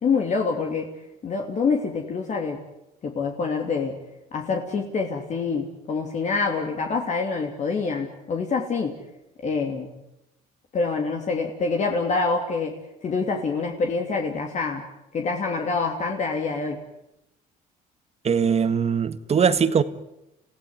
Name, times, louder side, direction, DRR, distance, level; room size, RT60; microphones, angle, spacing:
voice 1, 0.0-0.9 1.2-2.6 3.0-3.9 4.3-8.9 9.4-9.9 10.7-12.8 13.0-14.8 15.1-16.8, left 4 dB, 45° left, 2 dB, 3.1 m, -26 dB
voice 2, 18.2-19.8, right 6 dB, 40° right, 12 dB, 1.6 m, -21 dB
29.0 x 16.5 x 9.7 m, 0.86 s
cardioid pair, 110°, 17 cm